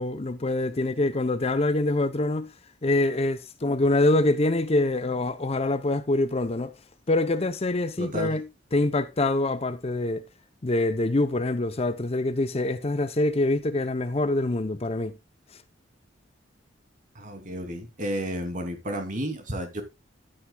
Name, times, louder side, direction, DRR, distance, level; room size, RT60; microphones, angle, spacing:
voice 1, 0.0-2.5 2.8-6.8 7.1-10.2 10.6-15.2, left 2 dB, 30° left, 0.6 m, -25 dB
voice 2, 8.0-8.3 17.1-19.8, equal, 40° right, 2.7 m, -32 dB
13.0 x 8.9 x 2.3 m
head